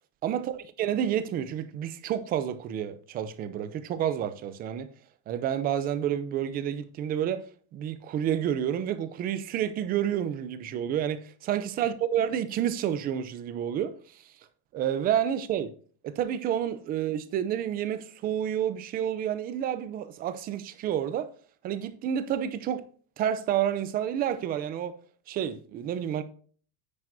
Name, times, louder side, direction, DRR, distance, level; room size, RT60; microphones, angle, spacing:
voice 1, 0.2-4.9 5.3-7.4 7.7-14.2 14.7-15.7 16.0-21.3 21.6-22.8 23.2-25.0 25.3-26.2, right 10 dB, 20° right, 0.5 m, -29 dB
9.7 x 9.0 x 2.6 m
supercardioid pair, 160°, 48 cm